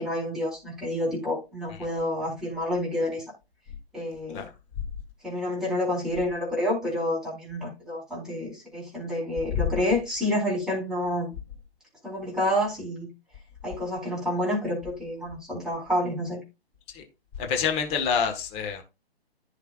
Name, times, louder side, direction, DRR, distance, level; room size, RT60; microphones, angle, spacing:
voice 1, 0.0-3.2 3.9-4.4 5.2-11.3 12.0-13.1 13.6-16.4, left 1 dB, ahead, 4.3 m, -29 dB
voice 2, 17.4-18.8, left 7 dB, 20° left, 1.5 m, -27 dB
14.0 x 5.7 x 2.5 m
figure-of-eight pair, 140°, 32 cm